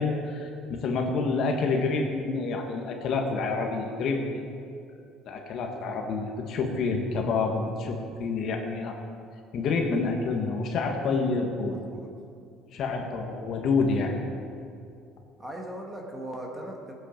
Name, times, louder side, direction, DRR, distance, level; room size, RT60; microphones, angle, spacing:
voice 1, 0.0-4.4 5.3-9.0 9.5-11.8 12.7-14.2, left 4 dB, 40° left, 2 dB, 1.3 m, -28 dB
voice 2, 11.7-12.1 12.7-12.9 15.4-16.9, right 1 dB, 10° right, 0 dB, 1.4 m, -39 dB
18.5 x 8.1 x 5.1 m, 2.4 s
cardioid pair, 175°, 0 cm